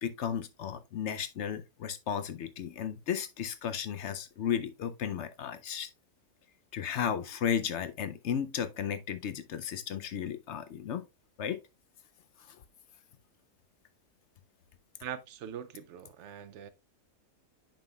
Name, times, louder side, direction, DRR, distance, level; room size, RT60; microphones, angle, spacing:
voice 1, 0.0-5.9 6.7-11.1 11.4-11.6 12.5-12.6, left 8 dB, 65° left, 0.7 m, -34 dB
voice 2, 15.0-16.7, right 9 dB, 70° right, 0.7 m, -42 dB
8.9 x 5.6 x 2.3 m
omnidirectional pair, 1.6 m